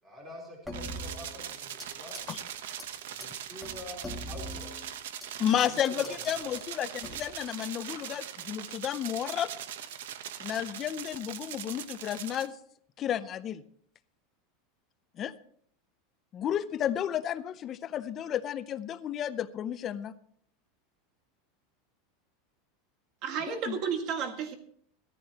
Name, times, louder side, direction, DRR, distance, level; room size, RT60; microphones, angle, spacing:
voice 1, 0.0-2.2 3.1-4.7 5.5-6.6, left 1 dB, 15° right, -1 dB, 3.7 m, -46 dB
sound 1, 0.7-1.9 2.1-2.4 2.8-2.9 3.2-3.3 3.6-5.3 5.6-6.4 7.0-7.4, equal, ahead, 2.0 m, -42 dB
sound 2, 0.7-12.5, right 10 dB, 85° right, 0.9 m, -41 dB
voice 2, 5.4-9.5 10.4-12.6 13.0-13.6 15.2-15.3 16.3-20.1 23.5-23.8, left 10 dB, 25° left, 12 dB, 0.5 m, -32 dB
voice 3, 23.2-24.6, right 7 dB, 40° right, 6 dB, 1.7 m, -32 dB
16.0 x 14.0 x 2.9 m, 0.62 s
supercardioid pair, 160°, 0 cm